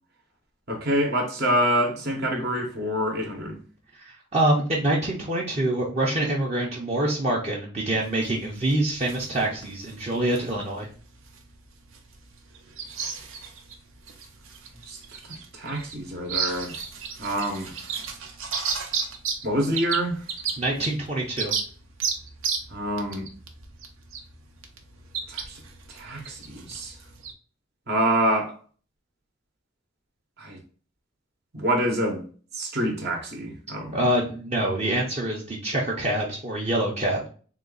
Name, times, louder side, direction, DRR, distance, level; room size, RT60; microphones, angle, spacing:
voice 1, 0.7-3.6 14.9-15.0 15.5-16.7 17.2-17.7 19.4-20.2 22.7-23.2 25.3-25.6 25.9-26.9 27.9-28.6 30.4-30.6 31.5-32.2 32.5-34.1, right 1 dB, 50° right, 1.0 m, -26 dB
voice 2, 4.0-10.9 20.6-21.5 33.9-37.3, right 1 dB, 30° right, 0.7 m, -25 dB
sound 1, 8.0-27.3, right 6 dB, 85° right, 0.8 m, -34 dB
3.9 x 2.3 x 3.8 m
head